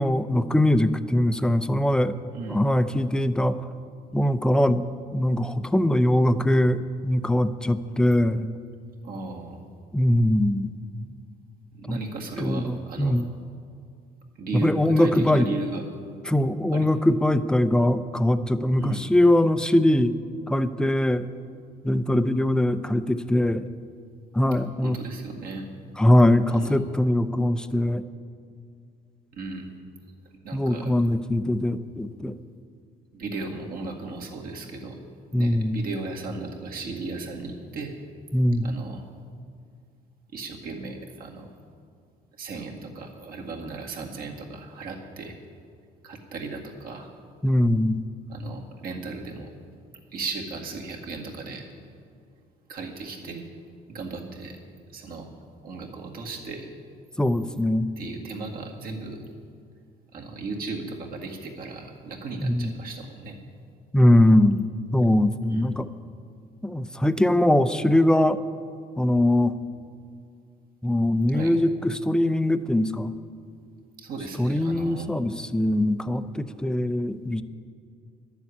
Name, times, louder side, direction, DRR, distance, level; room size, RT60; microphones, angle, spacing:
voice 1, 0.0-2.2 2.5-3.6 4.1-4.8 5.1-8.5 9.9-10.7 11.9-12.0 12.4-13.3 14.5-15.5 16.3-20.1 20.5-21.3 21.8-23.7 24.3-25.0 26.0-28.0 30.5-32.4 35.3-35.8 38.3-38.7 47.4-48.0 57.2-57.9 62.4-62.7 63.9-64.7 64.9-65.9 66.6-68.4 69.0-69.6 70.8-73.1 74.4-77.4, left 1 dB, 5° left, 12 dB, 0.5 m, -22 dB
voice 2, 9.0-9.6 11.7-13.2 14.4-15.8 16.7-16.9 18.7-19.1 24.8-25.7 26.5-26.8 29.3-29.7 30.4-30.9 33.1-35.0 35.4-37.9 38.6-39.0 40.3-41.5 42.4-45.4 46.0-47.1 48.3-49.5 50.1-51.7 52.7-53.5 53.9-54.6 54.9-55.3 55.6-56.7 58.0-59.2 60.1-63.4 65.5-65.7 71.3-71.6 74.0-75.1, right 3 dB, 60° right, 0 dB, 2.0 m, -36 dB
11.5 x 7.1 x 9.6 m, 2.3 s
cardioid pair, 110°, 17 cm